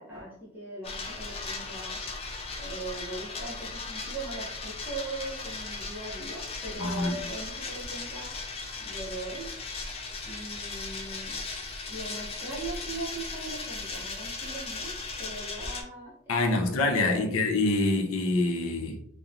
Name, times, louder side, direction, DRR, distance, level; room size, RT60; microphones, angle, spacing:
voice 1, 0.0-2.0 2.6-8.3 8.8-9.5 10.2-11.3 11.9-14.9 15.2-17.3, right 2 dB, 10° right, 0.6 m, -40 dB
sound 1, 0.8-15.8, left 3 dB, 30° left, 0.3 m, -37 dB
voice 2, 6.8-7.2 16.3-19.0, left 2 dB, 80° left, 0.5 m, -26 dB
2.8 x 2.0 x 2.4 m
head